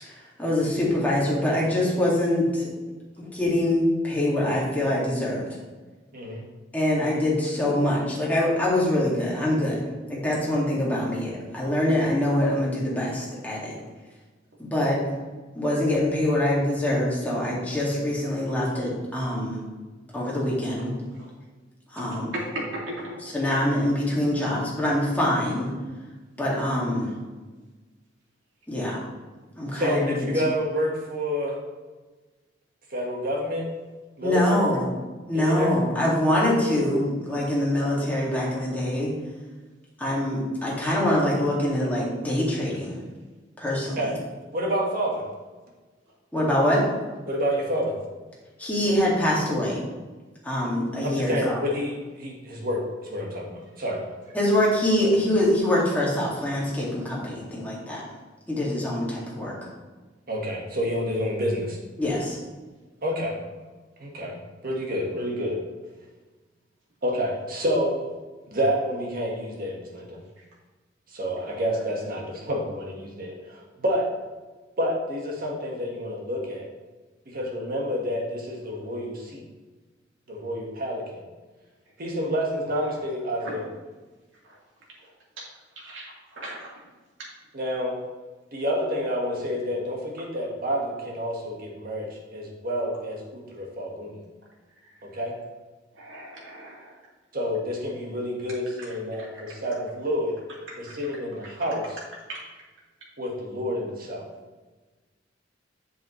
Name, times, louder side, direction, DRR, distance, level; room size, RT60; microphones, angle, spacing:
voice 1, 0.4-0.7 1.0-2.7 3.2-5.4 6.7-13.7 14.6-15.0 15.5-19.6 20.1-20.9 21.9-22.4 23.2-25.7 26.4-27.1 28.7-29.0 29.6-30.3 34.2-34.8 35.3-39.1 40.0-43.0 43.6-44.1 46.3-46.9 48.6-49.8 50.4-51.6 54.3-58.0 58.5-59.5 62.0-62.4, left 1 dB, 10° left, -6 dB, 2.2 m, -24 dB
voice 2, 6.1-6.4 29.7-31.6 32.9-33.7 34.2-34.8 35.3-35.7 44.0-44.2 44.5-45.2 47.3-48.0 51.0-54.0 60.3-61.8 63.0-63.4 64.0-65.6 67.0-68.2 68.5-70.2 71.1-74.1 74.8-76.7 77.3-79.4 80.3-81.2 82.0-83.7 87.5-88.0 88.5-94.2 95.0-95.3 97.3-100.4 100.8-102.0 103.2-104.3, equal, 50° right, -1 dB, 1.6 m, -29 dB
voice 3, 22.5-23.2 85.8-86.7 96.0-96.9 102.3-102.4, right 1 dB, 80° right, -4 dB, 2.5 m, -36 dB
7.7 x 7.2 x 3.2 m, 1.3 s
head